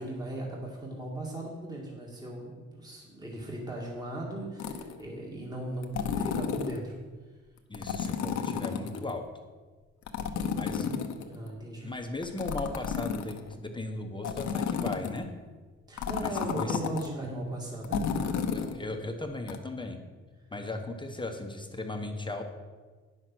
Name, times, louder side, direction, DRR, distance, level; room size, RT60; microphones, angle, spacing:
voice 1, 0.0-5.9 6.2-7.0 10.8-11.0 11.3-11.9 15.9-18.3, right 1 dB, 15° right, -3 dB, 2.0 m, -38 dB
sound 1, 4.6-5.0 5.8-6.8 7.7-9.1 10.1-11.5 12.2-13.5 14.2-15.2 16.0-17.1 17.8-18.8 19.5-19.6, left 7 dB, 70° left, 1.0 m, -32 dB
voice 2, 7.7-9.3 10.6-10.9 11.8-15.3 16.2-16.8 18.5-20.0 20.5-22.4, left 2 dB, 15° left, 4 dB, 1.1 m, -37 dB
9.7 x 6.4 x 6.1 m, 1.4 s
cardioid pair, 90°, 30 cm